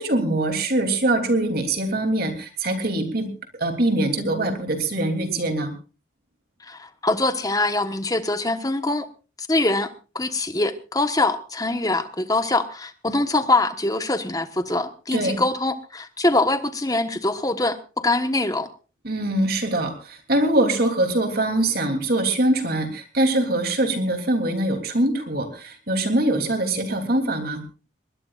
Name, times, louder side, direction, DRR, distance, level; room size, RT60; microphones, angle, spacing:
voice 1, 0.0-3.3 3.6-5.7 15.1-15.4 19.0-27.6, right 1 dB, 50° right, 6 dB, 3.1 m, -23 dB
voice 2, 6.6-9.1 9.4-18.7, left 2 dB, 20° left, 9 dB, 1.2 m, -23 dB
21.0 x 20.0 x 2.5 m, 0.35 s
head